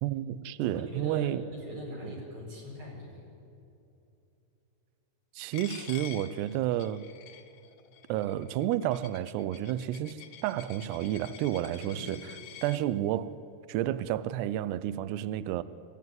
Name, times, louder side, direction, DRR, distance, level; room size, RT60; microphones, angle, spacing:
voice 1, 0.0-1.4 5.4-7.1 8.1-12.3 12.6-13.3 13.7-15.6, right 12 dB, 85° right, 2.4 m, -31 dB
voice 2, 0.6-3.3 11.8-12.3, equal, 30° right, 5.7 m, -42 dB
Coin (dropping), 5.5-12.8, left 10 dB, 80° left, 2.0 m, -48 dB
26.5 x 14.0 x 9.4 m
omnidirectional pair, 5.6 m